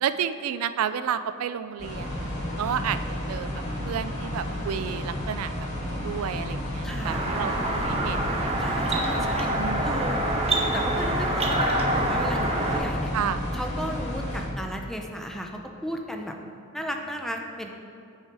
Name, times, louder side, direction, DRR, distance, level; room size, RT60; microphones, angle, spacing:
voice 1, 0.0-2.3 2.6-3.0 3.3-5.5 5.8-9.0 9.6-10.0 13.1-13.4, right 8 dB, 80° right, 12 dB, 0.3 m, -31 dB
sound 1, 1.8-14.5, left 1 dB, 35° left, 1.6 m, -32 dB
voice 2, 6.8-7.2 8.6-9.5 9.8-10.2 10.5-13.1 13.5-16.4 16.7-17.7, equal, ahead, 2 dB, 0.6 m, -35 dB
sound 2, 7.0-12.8, right 1 dB, 30° right, 0.9 m, -26 dB
8.8 x 5.6 x 4.7 m, 2.6 s
head